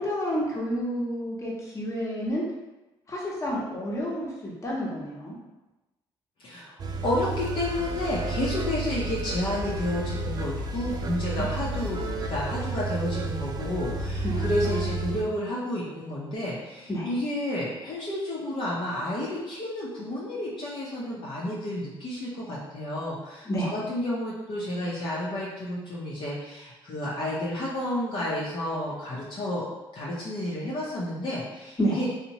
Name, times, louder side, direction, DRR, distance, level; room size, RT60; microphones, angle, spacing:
voice 1, 0.0-2.4 3.1-5.4 11.4-11.5 14.2-14.4 16.9-17.1 23.5-23.7 31.8-32.0, equal, 30° left, -5 dB, 0.9 m, -29 dB
voice 2, 6.4-29.7 29.9-32.1, left 1 dB, 50° left, -7 dB, 0.6 m, -31 dB
sound 1, 6.8-15.2, right 2 dB, 40° right, 0.3 m, -31 dB
2.8 x 2.1 x 2.7 m, 1.0 s
cardioid pair, 80°, 10 cm